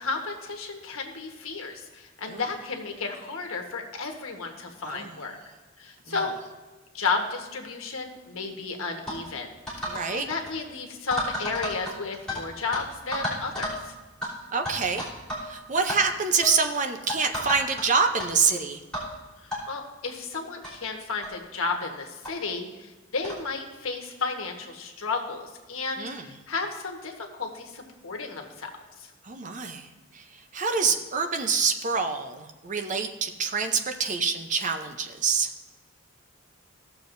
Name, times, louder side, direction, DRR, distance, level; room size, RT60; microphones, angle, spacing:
voice 1, 0.0-5.3 5.8-6.3 6.9-9.5 9.8-13.9 19.7-28.7, left 4 dB, 80° left, 2 dB, 1.3 m, -33 dB
sound 1, 9.1-9.2 9.7-10.0 10.3-10.5 11.1-12.4 12.7-12.8 13.1-13.8 14.2-14.3 14.7-15.5 15.7-16.0 16.4-16.6 17.1-17.8 18.2-18.3 18.9-19.1 19.5-19.6 20.3-20.4 20.6-20.7 21.2-21.4 22.2-22.3 23.2-23.4, equal, 5° left, 3.2 m, -32 dB
voice 2, 9.9-10.3 14.5-15.1 15.4-18.8 26.0-26.3 29.2-35.5, right 5 dB, 35° right, 6 dB, 0.6 m, -26 dB
16.5 x 6.9 x 2.6 m, 1.2 s
head